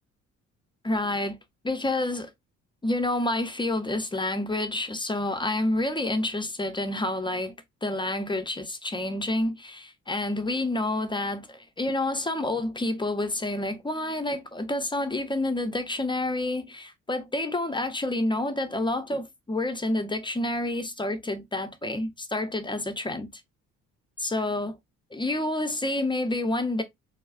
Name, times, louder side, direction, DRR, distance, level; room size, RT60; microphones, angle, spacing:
voice 1, 0.8-1.4 1.6-2.3 2.8-7.5 7.8-23.3 24.2-24.8 25.1-26.8, left 2 dB, 15° left, 0.6 m, -28 dB
4.5 x 2.0 x 2.4 m
cardioid pair, 90°, 30 cm